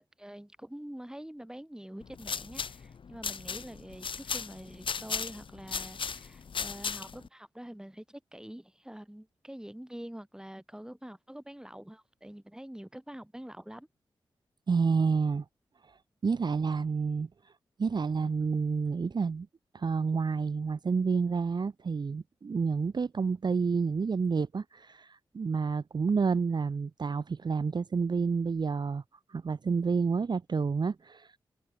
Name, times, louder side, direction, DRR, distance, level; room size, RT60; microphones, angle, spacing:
voice 1, 0.0-13.9, equal, 5° right, 4.4 m, -46 dB
sound 1, 2.0-7.3, left 6 dB, 65° left, 1.3 m, -36 dB
voice 2, 14.7-15.4 15.8-16.0 16.2-17.5 17.8-19.5 19.7-29.0 29.3-31.4, right 5 dB, 50° right, 0.8 m, -29 dB
supercardioid pair, 40°, 9 cm